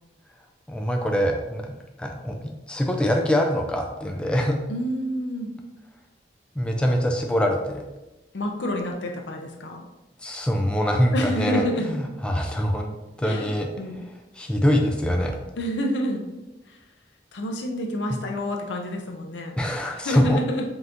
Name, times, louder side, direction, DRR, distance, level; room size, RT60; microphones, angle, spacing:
voice 1, 0.7-2.3 2.7-4.6 6.6-7.8 10.2-11.6 11.9-13.7 14.4-15.3 19.6-20.4, equal, 5° left, 1 dB, 0.3 m, -24 dB
voice 2, 4.7-5.5 8.3-9.9 11.1-11.9 13.2-14.0 15.6-16.2 16.7-16.8 17.3-19.6 19.9-20.6, equal, 90° left, 2 dB, 0.6 m, -28 dB
5.3 x 2.9 x 2.5 m, 1.0 s
head